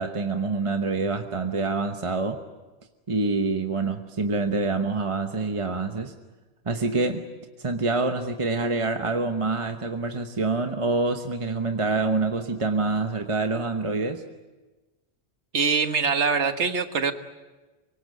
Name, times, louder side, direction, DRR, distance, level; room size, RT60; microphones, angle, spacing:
voice 1, 0.0-2.4 3.1-6.1 6.6-7.3 7.6-14.2, right 3 dB, 30° right, 5 dB, 1.1 m, -26 dB
voice 2, 15.5-17.1, right 5 dB, 85° right, 8 dB, 1.7 m, -23 dB
25.0 x 23.5 x 7.8 m, 1.2 s
omnidirectional pair, 1.1 m